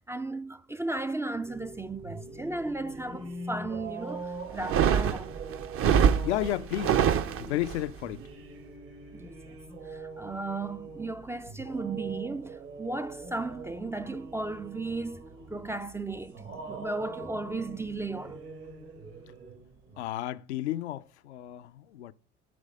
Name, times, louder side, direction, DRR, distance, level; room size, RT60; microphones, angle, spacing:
voice 1, 0.1-5.3 9.1-9.5 9.9-15.2 15.5-18.4, right 2 dB, 10° right, 0.3 m, -35 dB
sound 1, 1.4-20.0, right 3 dB, 75° right, 3.1 m, -43 dB
sound 2, 4.5-7.8, right 8 dB, 40° right, 0.6 m, -25 dB
voice 2, 6.2-7.0 7.4-8.2 20.0-22.1, left 13 dB, 80° left, 0.5 m, -32 dB
8.6 x 3.3 x 6.5 m
hypercardioid pair, 65°, 33 cm